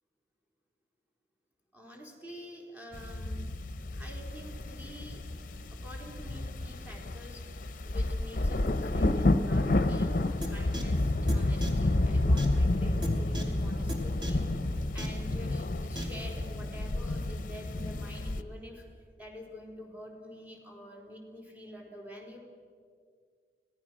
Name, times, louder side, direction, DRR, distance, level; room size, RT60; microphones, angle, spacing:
voice 1, 1.7-3.5 3.9-5.3 5.8-18.9 19.2-22.4, left 1 dB, 10° right, -1 dB, 4.0 m, -47 dB
sound 1, 2.9-18.4, left 2 dB, 50° left, 0.8 m, -30 dB
sound 2, 10.4-10.5 10.7-10.8 11.3-11.4 11.6-11.7 12.4-12.5 13.0-13.1 13.3-13.4 13.9-14.0 14.2-14.3 15.0-15.1 15.9-16.0, equal, 25° right, 2.8 m, -36 dB
26.0 x 17.5 x 6.3 m, 2.1 s
head